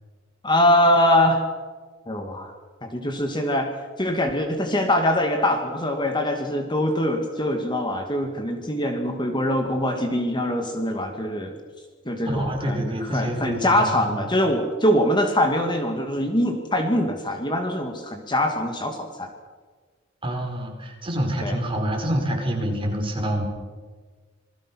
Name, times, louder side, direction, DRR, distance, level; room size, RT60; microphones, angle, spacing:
voice 1, 0.4-1.4 2.1-2.5 2.8-3.7 4.0-11.6 12.1-19.3 21.4-21.6, left 1 dB, 20° left, 4 dB, 2.1 m, -23 dB
voice 2, 12.2-14.2 20.2-23.5, equal, 25° right, 1 dB, 5.0 m, -27 dB
27.5 x 21.0 x 6.3 m, 1.5 s
head